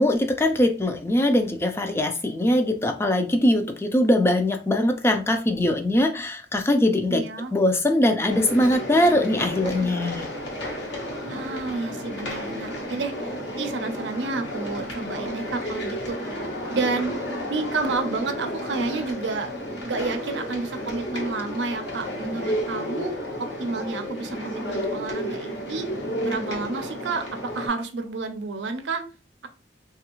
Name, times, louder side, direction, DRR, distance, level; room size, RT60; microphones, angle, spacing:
voice 1, 0.0-7.2 7.5-10.3, left 1 dB, 15° left, 5 dB, 0.3 m, -21 dB
voice 2, 7.1-7.5 11.3-16.2 16.7-19.5 19.8-23.1 23.6-25.9 26.2-27.2 27.5-29.0, right 3 dB, 85° right, 8 dB, 0.5 m, -30 dB
sound 1, 8.3-27.7, equal, 85° left, 1.0 m, -32 dB
3.3 x 2.4 x 2.9 m, 0.35 s
head